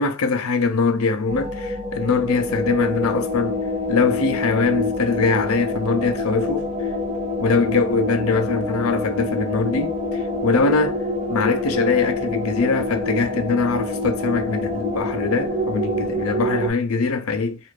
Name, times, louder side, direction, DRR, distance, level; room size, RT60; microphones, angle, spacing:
voice 1, 0.0-3.6 3.9-6.7 7.4-11.0 11.3-17.6, left 4 dB, 80° left, 0.5 m, -22 dB
sound 1, 1.3-16.7, left 2 dB, 30° right, 0.7 m, -26 dB
2.5 x 2.4 x 3.1 m
head